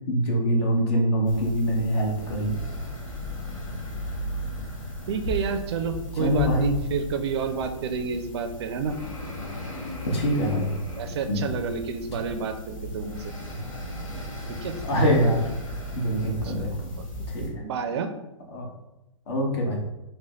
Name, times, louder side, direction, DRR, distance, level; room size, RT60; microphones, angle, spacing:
voice 1, 0.1-2.6 6.2-6.7 10.0-10.7 11.3-11.5 14.9-15.5 15.9-17.0 17.3-17.6 18.5-18.7 19.3-19.8, equal, 50° left, 0 dB, 1.1 m, -24 dB
sound 1, 1.2-17.5, left 1 dB, 70° left, 1.5 m, -36 dB
voice 2, 5.1-9.0 11.0-13.3 14.5-14.8 16.4-16.7 17.0-17.1 17.4-18.1, right 5 dB, 50° right, 8 dB, 0.4 m, -30 dB
4.9 x 2.1 x 3.1 m, 0.94 s
hypercardioid pair, 120°, 17 cm